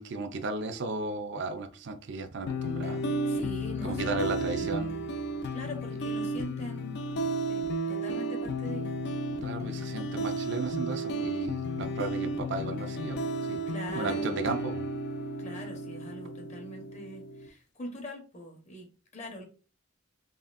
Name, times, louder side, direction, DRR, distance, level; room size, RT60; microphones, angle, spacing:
voice 1, 0.0-3.0 3.8-5.0 9.4-13.2 13.5-13.6 13.9-14.9, right 3 dB, 60° right, 7 dB, 0.5 m, -34 dB
sound 1, 2.5-17.5, right 1 dB, 55° left, 0.4 m, -33 dB
voice 2, 3.2-4.8 5.5-6.9 7.5-8.9 13.7-14.3 15.4-19.4, left 1 dB, 35° left, 2 dB, 1.0 m, -42 dB
4.1 x 3.2 x 2.5 m, 0.36 s
head